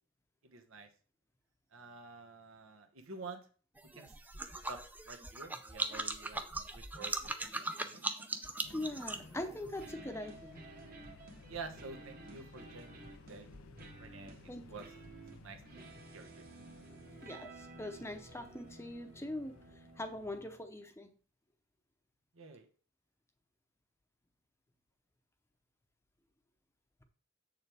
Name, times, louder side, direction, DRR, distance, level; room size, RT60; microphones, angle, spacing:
voice 1, 0.5-0.9 1.7-3.4 4.0-4.1 4.7-4.8 5.1-6.4 6.7-7.5 7.8-8.0 11.5-13.0 13.3-13.5 14.0-14.3 14.7-14.8 15.3-15.9 16.1-16.4 22.3-22.6, right 4 dB, 80° right, 5 dB, 1.2 m, -49 dB
sound 1, 3.8-9.9, right 2 dB, 10° right, 0.5 m, -40 dB
sound 2, 7.4-20.9, right 2 dB, 45° right, 1.5 m, -54 dB
sound 3, 8.6-20.5, left 5 dB, 90° left, 0.5 m, -58 dB
voice 2, 8.7-10.6 14.5-14.7 17.2-21.1, left 1 dB, 10° left, 7 dB, 0.8 m, -42 dB
7.7 x 6.6 x 3.5 m, 0.40 s
head